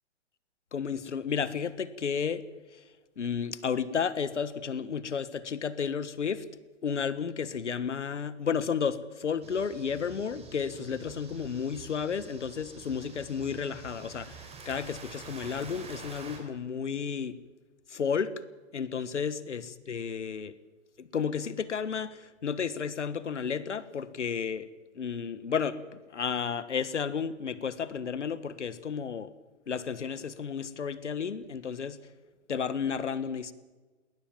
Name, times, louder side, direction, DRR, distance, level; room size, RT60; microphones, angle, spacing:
voice 1, 0.7-2.4 3.2-6.4 6.8-17.4 17.9-18.3 18.7-20.5 21.0-24.7 24.9-25.8 26.1-29.3 29.7-32.0 32.5-33.5, left 6 dB, 70° left, 15 dB, 1.6 m, -32 dB
sound 1, 9.4-16.4, right 4 dB, 15° right, 4.1 m, -47 dB
20.5 x 19.0 x 7.3 m, 1.3 s
figure-of-eight pair, 115°, 36 cm